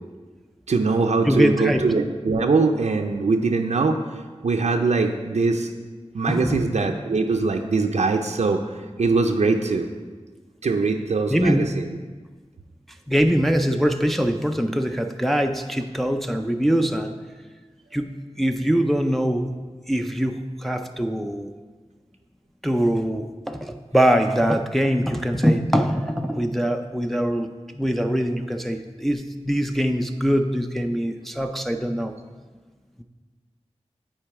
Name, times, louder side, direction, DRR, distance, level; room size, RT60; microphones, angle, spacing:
voice 1, 0.7-4.0 4.4-5.7 6.1-9.9 10.6-11.9, right 3 dB, 85° right, 3 dB, 0.5 m, -22 dB
voice 2, 1.2-1.8 6.3-6.6 11.3-11.7 13.1-17.2 17.9-19.5 19.9-21.5 22.6-27.5 27.7-32.1, equal, ahead, 5 dB, 0.4 m, -23 dB
8.9 x 4.5 x 4.7 m, 1.4 s
wide cardioid pair, 80°, 11 cm